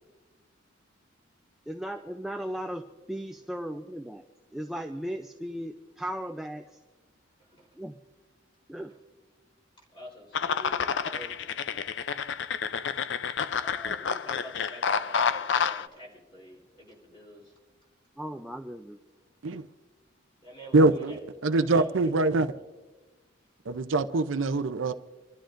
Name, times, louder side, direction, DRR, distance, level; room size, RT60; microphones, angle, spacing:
voice 1, 1.7-4.2 4.5-6.7 7.8-8.0 8.7-8.9 18.2-19.0, equal, ahead, 0.4 m, -36 dB
voice 2, 9.9-12.1 13.6-17.5 20.4-21.2 21.5-22.6, equal, 25° left, 3.6 m, -47 dB
sound 1, 10.3-15.9, left 6 dB, 60° left, 0.4 m, -29 dB
voice 3, 20.7-21.1 21.4-22.5 23.7-24.9, right 2 dB, 75° right, 0.6 m, -23 dB
27.5 x 12.5 x 2.5 m
head